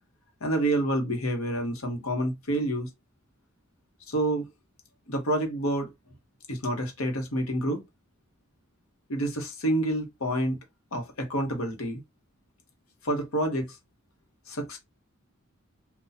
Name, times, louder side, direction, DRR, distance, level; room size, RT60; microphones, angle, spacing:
voice 1, 0.4-2.9 4.1-4.5 5.1-5.9 6.5-7.8 9.1-10.6 10.9-12.0 13.0-13.7 14.5-14.8, right 1 dB, 90° left, 1.0 m, -28 dB
2.6 x 2.3 x 4.0 m
head